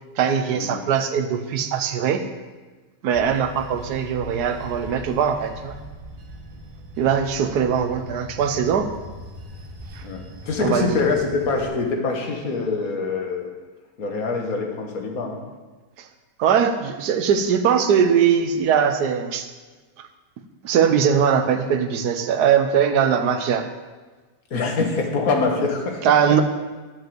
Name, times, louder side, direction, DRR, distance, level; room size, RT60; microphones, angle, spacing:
voice 1, 0.2-2.3 3.0-5.8 7.0-8.9 9.9-10.0 10.6-11.0 16.0-16.1 16.4-19.5 20.0-20.1 20.6-23.7 26.0-26.4, right 7 dB, 60° right, 8 dB, 1.2 m, -21 dB
Bell / Train, 3.1-11.7, equal, 80° right, 2.0 m, -40 dB
voice 2, 10.0-13.5 14.0-15.4 24.5-26.0, left 4 dB, 50° left, 2 dB, 1.8 m, -24 dB
11.5 x 5.2 x 7.8 m, 1.3 s
omnidirectional pair, 2.1 m